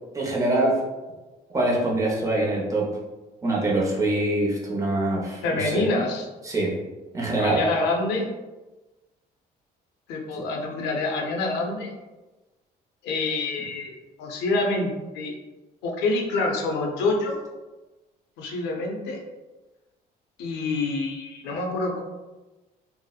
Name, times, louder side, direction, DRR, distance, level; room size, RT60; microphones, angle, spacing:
voice 1, 0.1-0.8 1.5-2.9 3.4-5.8 6.4-6.7 7.1-7.6, right 2 dB, 20° right, -3 dB, 0.6 m, -24 dB
voice 2, 5.4-6.3 7.4-8.3 10.1-12.0 13.0-15.4 15.8-17.4 18.4-19.2 20.4-22.0, left 2 dB, 80° left, 1 dB, 0.5 m, -26 dB
2.7 x 2.0 x 2.3 m, 1.1 s
cardioid pair, 110°, 17 cm